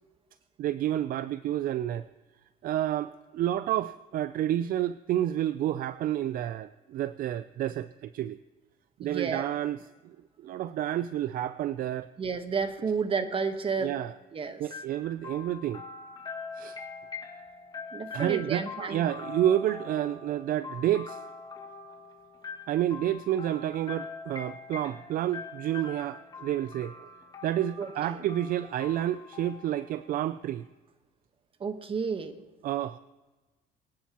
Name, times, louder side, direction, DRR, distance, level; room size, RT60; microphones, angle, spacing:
voice 1, 0.6-2.1 2.6-8.4 9.0-9.8 10.0-12.1 13.8-14.1 14.6-15.9 16.5-16.8 18.1-21.2 22.7-27.1 27.4-30.7 32.6-33.0, right 12 dB, 55° right, 15 dB, 0.4 m, -30 dB
voice 2, 9.0-9.5 12.2-14.0 14.3-14.6 17.9-19.0 27.8-28.3 31.6-32.3, right 5 dB, 30° right, 9 dB, 1.1 m, -31 dB
sound 1, 14.7-30.5, left 5 dB, 25° left, 2.0 m, -43 dB
23.5 x 10.5 x 3.0 m, 1.2 s
cardioid pair, 110°, 17 cm